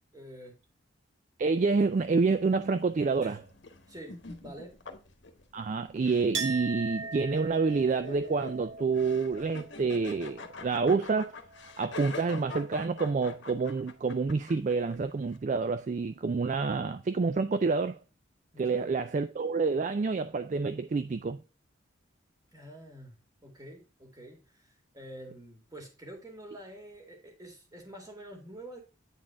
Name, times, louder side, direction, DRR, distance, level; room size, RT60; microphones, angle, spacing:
voice 1, 0.1-0.6 3.2-3.4 3.9-4.8 18.5-18.9 22.5-28.8, right 1 dB, 15° right, 2.0 m, -47 dB
voice 2, 1.4-3.4 5.5-11.3 11.8-18.0 18.6-21.4, right 4 dB, 35° right, 0.3 m, -28 dB
sound 1, 1.8-15.4, left 3 dB, 60° left, 1.1 m, -46 dB
Chink clink, 6.3-11.9 12.2-13.0, right 4 dB, 70° right, 1.6 m, -41 dB
8.8 x 4.2 x 3.6 m
head